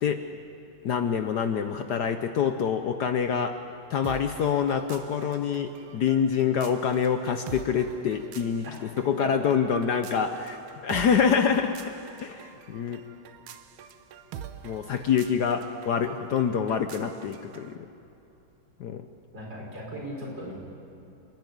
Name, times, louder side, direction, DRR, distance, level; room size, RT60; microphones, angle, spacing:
voice 1, 0.8-3.5 3.9-8.6 9.0-10.6 10.8-11.7 12.2-13.0 14.6-17.8 18.8-19.0, left 7 dB, 65° left, 8 dB, 1.2 m, -26 dB
sound 1, 4.0-17.7, right 8 dB, 80° right, 1.6 m, -45 dB
voice 2, 19.3-20.5, equal, 55° right, -3 dB, 5.8 m, -37 dB
27.0 x 10.5 x 9.3 m, 2.9 s
omnidirectional pair, 2.2 m